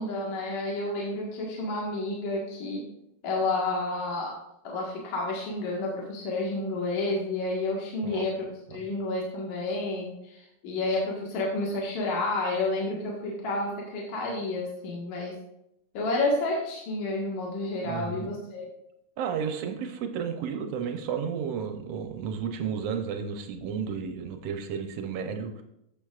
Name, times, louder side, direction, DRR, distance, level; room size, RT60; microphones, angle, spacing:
voice 1, 0.0-2.8 3.2-4.4 4.6-15.3 15.9-18.7, left 2 dB, 65° left, -3 dB, 2.8 m, -30 dB
voice 2, 17.8-18.3 19.2-25.6, right 7 dB, 75° right, 5 dB, 1.5 m, -32 dB
14.0 x 7.2 x 2.4 m, 0.81 s
omnidirectional pair, 3.8 m